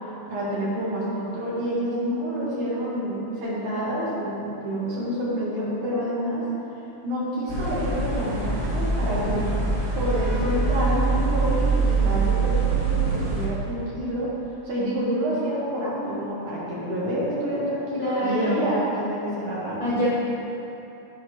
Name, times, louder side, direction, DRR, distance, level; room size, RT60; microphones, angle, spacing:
voice 1, 0.3-6.4 7.0-9.4 9.9-14.3 14.7-20.1, equal, 50° right, -8 dB, 2.1 m, -28 dB
sound 1, 7.5-13.5, right 4 dB, 70° right, 0.7 m, -24 dB
voice 2, 18.0-18.7 19.8-20.2, equal, 70° left, -10 dB, 0.8 m, -25 dB
11.5 x 4.3 x 3.0 m, 2.9 s
omnidirectional pair, 3.6 m